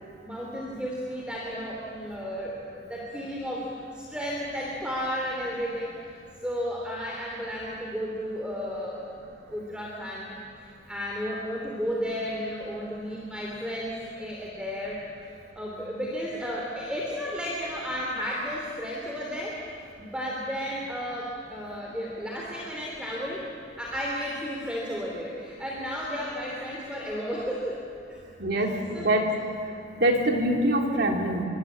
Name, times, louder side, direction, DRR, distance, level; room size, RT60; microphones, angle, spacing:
voice 1, 0.2-5.9 6.4-9.0 9.5-15.0 15.5-19.6 20.0-23.5 23.8-27.8 28.1-28.2 28.5-29.1, equal, 5° right, -3 dB, 3.0 m, -33 dB
voice 2, 28.4-29.3 30.0-31.4, right 1 dB, 60° right, 2 dB, 3.2 m, -24 dB
24.5 x 24.0 x 8.6 m, 2.5 s
head